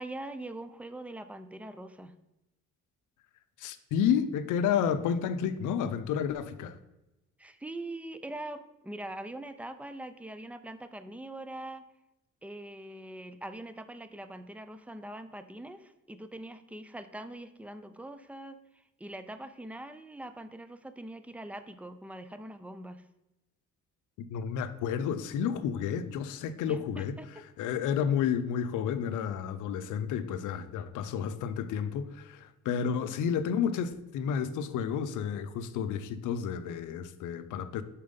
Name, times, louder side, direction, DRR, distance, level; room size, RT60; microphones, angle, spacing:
voice 1, 0.0-2.1 7.4-11.8 12.4-18.6 19.0-23.0 26.7-27.4, right 1 dB, 5° right, 0.4 m, -43 dB
voice 2, 3.6-6.8 24.3-27.2 27.6-37.8, left 8 dB, 85° left, 0.6 m, -31 dB
5.3 x 4.4 x 5.1 m
cardioid pair, 90°, 30 cm